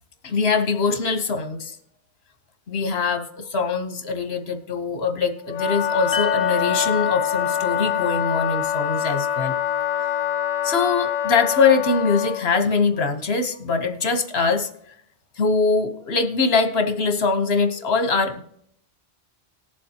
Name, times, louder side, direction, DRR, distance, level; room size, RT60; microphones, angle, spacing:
voice 1, 0.2-1.8 2.7-9.6 10.6-14.7 15.4-18.4, left 4 dB, 70° left, 7 dB, 1.3 m, -22 dB
Wind instrument woodwind instrument, 5.4-12.5, left 10 dB, 50° left, 0.6 m, -25 dB
sound 1, 6.1-10.0, left 4 dB, 20° left, 1.0 m, -31 dB
18.5 x 7.2 x 2.9 m, 0.72 s
omnidirectional pair, 1.1 m